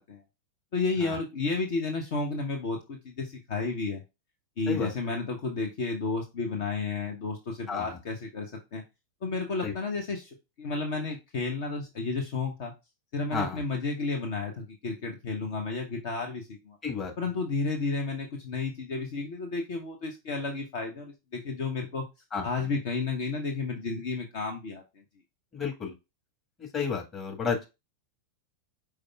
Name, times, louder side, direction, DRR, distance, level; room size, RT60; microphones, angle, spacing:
voice 1, 0.7-4.0 4.6-8.8 9.2-12.7 13.1-16.8 17.2-22.1 22.4-24.8, left 3 dB, 50° left, 3 dB, 0.8 m, -32 dB
voice 2, 7.7-8.0 9.6-9.7 13.3-13.6 16.8-17.1 22.3-22.7 25.5-25.9 26.6-27.7, left 6 dB, 25° left, 1 dB, 1.5 m, -32 dB
5.1 x 4.5 x 2.3 m, 0.25 s
figure-of-eight pair, 90°, 0 cm